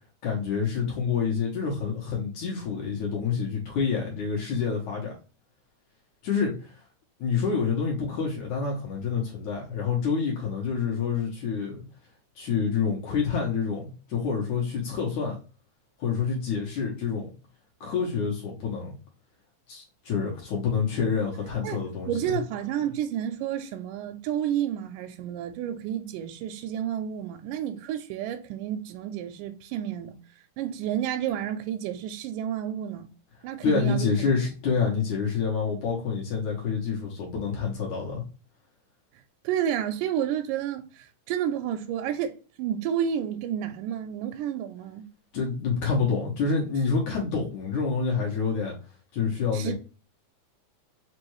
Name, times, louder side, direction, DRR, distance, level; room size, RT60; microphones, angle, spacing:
voice 1, 0.2-5.1 6.2-6.8 7.2-11.8 12.4-15.4 16.0-17.3 17.8-19.0 19.7-22.1 33.6-38.2 45.3-48.7 49.1-49.7, left 5 dB, 65° left, 2.2 m, -27 dB
voice 2, 21.6-30.2 30.6-33.1 33.4-34.1 39.4-45.1 49.5-49.7, right 10 dB, 80° right, 2.0 m, -30 dB
5.3 x 2.5 x 3.0 m
omnidirectional pair, 3.9 m